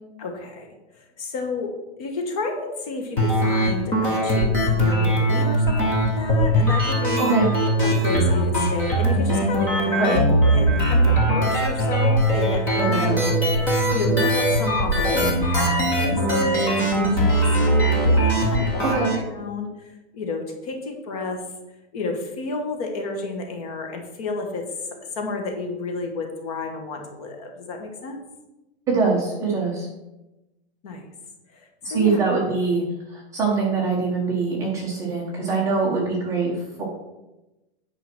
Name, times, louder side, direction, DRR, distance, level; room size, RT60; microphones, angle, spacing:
voice 1, 0.2-0.7 0.9-1.7 2.0-7.3 7.8-21.4 21.9-24.7 25.1-28.2 30.8-31.1 31.5-32.2, left 3 dB, 35° left, 3 dB, 1.3 m, -30 dB
sound 1, 3.2-19.2, right 1 dB, 5° left, 0.5 m, -20 dB
voice 2, 7.2-7.5 10.0-10.2 12.8-13.3 18.8-19.2 28.9-29.9 31.8-32.8 33.1-36.8, right 4 dB, 10° right, -4 dB, 1.1 m, -23 dB
9.0 x 4.9 x 6.0 m, 1.0 s
supercardioid pair, 180°, 33 cm